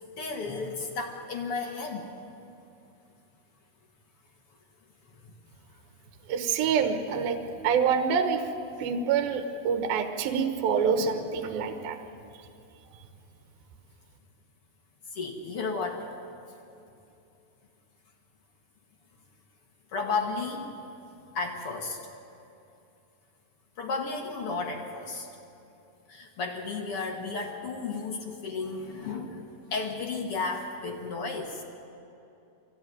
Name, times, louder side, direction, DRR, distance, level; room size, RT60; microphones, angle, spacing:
voice 1, 0.2-2.1 11.0-11.1 15.1-16.1 19.9-20.7 21.4-22.0 23.8-25.3 26.1-29.4 29.7-31.6, left 4 dB, 55° left, 2 dB, 1.7 m, -33 dB
voice 2, 6.3-7.4 7.6-8.5 8.8-12.0, right 6 dB, 75° right, 6 dB, 2.9 m, -26 dB
23.5 x 15.5 x 9.3 m, 2.7 s
omnidirectional pair, 4.4 m